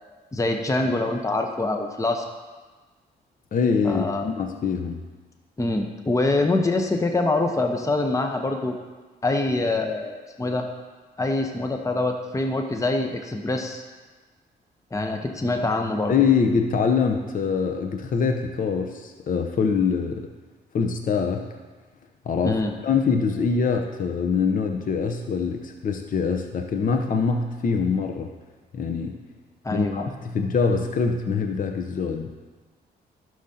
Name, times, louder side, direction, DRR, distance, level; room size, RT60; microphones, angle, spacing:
voice 1, 0.3-2.2 3.8-4.3 5.6-8.8 9.2-10.7 11.2-13.8 14.9-16.1 22.4-22.7 29.6-30.1, left 2 dB, 15° left, 4 dB, 0.9 m, -25 dB
voice 2, 3.5-5.0 16.1-20.3 20.7-21.5 22.3-28.3 28.7-29.2 29.7-32.3, left 5 dB, 50° left, 4 dB, 0.8 m, -24 dB
11.5 x 6.5 x 2.8 m, 1.3 s
cardioid pair, 65°, 18 cm